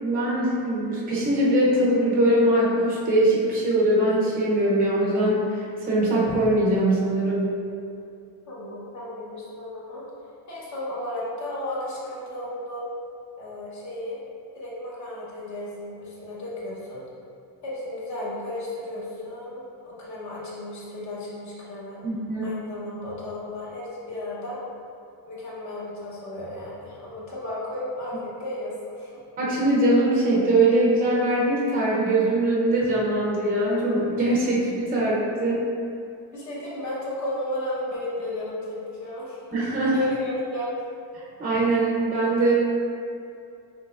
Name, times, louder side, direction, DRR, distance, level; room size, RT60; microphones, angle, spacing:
voice 1, 0.0-7.5 22.0-22.5 29.4-35.6 39.5-40.0 41.4-42.5, right 1 dB, 20° right, -6 dB, 0.7 m, -22 dB
voice 2, 8.5-10.0 10.5-12.9 13.4-14.2 14.5-17.0 17.6-22.0 22.4-24.6 25.3-29.2 36.3-39.4 39.9-40.7, left 1 dB, 40° left, -6 dB, 1.0 m, -34 dB
5.7 x 3.3 x 2.4 m, 2.6 s
cardioid pair, 165°, 45 cm